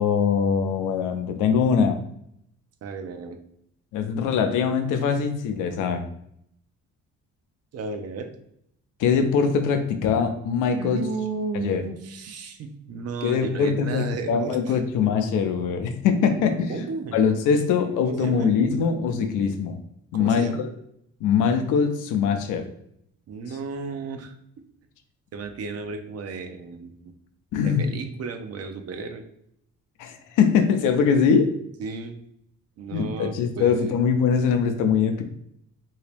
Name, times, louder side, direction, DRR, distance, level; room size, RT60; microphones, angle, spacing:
voice 1, 0.0-2.0 3.9-6.1 9.0-11.0 11.5-11.8 13.2-16.7 17.1-19.8 20.1-20.7 21.2-22.7 27.5-28.0 30.0-31.5 32.9-35.2, left 6 dB, 90° left, 7 dB, 0.5 m, -22 dB
voice 2, 2.8-3.4 7.7-8.3 10.8-14.8 16.7-17.2 17.8-18.5 20.1-20.7 23.3-24.3 25.3-27.1 27.6-29.2 31.8-32.2 32.8-33.9, right 4 dB, 55° right, 7 dB, 0.6 m, -34 dB
2.9 x 2.8 x 3.2 m, 0.72 s
cardioid pair, 90°, 30 cm